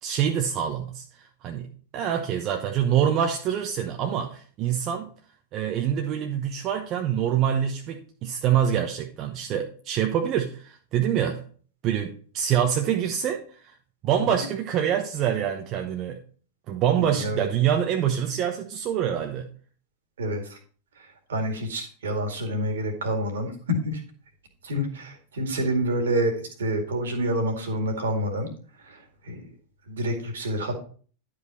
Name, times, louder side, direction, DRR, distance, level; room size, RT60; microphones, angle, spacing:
voice 1, 0.0-1.7 1.9-5.1 5.5-11.4 11.8-13.7 14.0-16.2 16.7-19.5, right 9 dB, 35° right, 0.9 m, -25 dB
voice 2, 17.0-17.4 20.2-20.6 21.0-24.0 24.6-28.5 28.8-29.5 29.9-30.8, equal, 65° right, 2.1 m, -28 dB
11.0 x 5.1 x 4.2 m
figure-of-eight pair, 90°, 0 cm